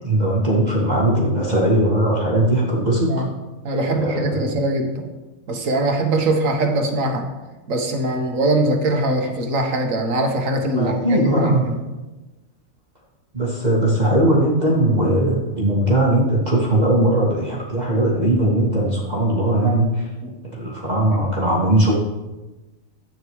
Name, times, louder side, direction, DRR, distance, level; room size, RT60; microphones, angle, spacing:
voice 1, 0.0-3.2 3.9-4.4 10.7-11.7 13.3-20.1 20.5-21.9, right 1 dB, 30° right, -5 dB, 1.9 m, -19 dB
voice 2, 3.6-5.1 5.5-7.3 7.7-11.7 20.2-20.3, right 1 dB, 65° right, 4 dB, 1.6 m, -22 dB
13.0 x 9.1 x 3.2 m, 1.1 s
omnidirectional pair, 1.5 m